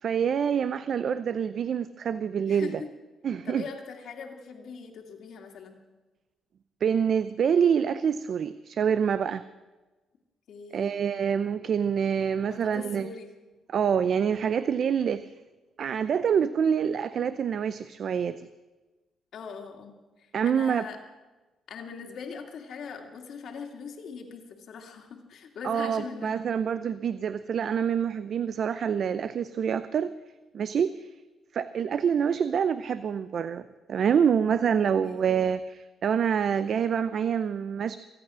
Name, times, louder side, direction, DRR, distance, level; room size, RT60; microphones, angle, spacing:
voice 1, 0.0-2.8 3.2-3.7 6.8-9.4 10.7-13.1 13.7-15.3 15.8-18.5 20.3-20.9 25.6-30.1 30.5-31.1 31.5-38.0, right 7 dB, 60° right, 14 dB, 0.5 m, -26 dB
voice 2, 2.5-2.9 3.4-5.8 10.5-10.9 12.5-13.3 19.3-21.0 21.7-26.5 35.0-35.2, left 5 dB, 70° left, 3 dB, 2.2 m, -41 dB
24.0 x 8.8 x 6.2 m, 1.2 s
cardioid pair, 90°, 0 cm